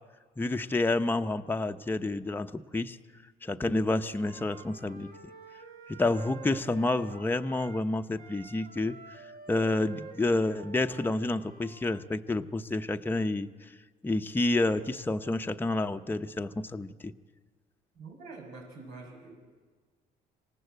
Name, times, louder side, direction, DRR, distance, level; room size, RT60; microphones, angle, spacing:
voice 1, 0.4-3.0 3.4-5.1 5.9-9.0 9.5-13.5 14.0-17.1, left 2 dB, 10° left, 6 dB, 0.8 m, -29 dB
Wind instrument woodwind instrument, 4.1-7.9 8.2-12.0, right 5 dB, 70° right, 2.2 m, -49 dB
voice 2, 17.9-19.4, right 3 dB, 90° right, 1 dB, 6.8 m, -46 dB
25.5 x 18.5 x 8.1 m, 1.5 s
cardioid pair, 110°, 17 cm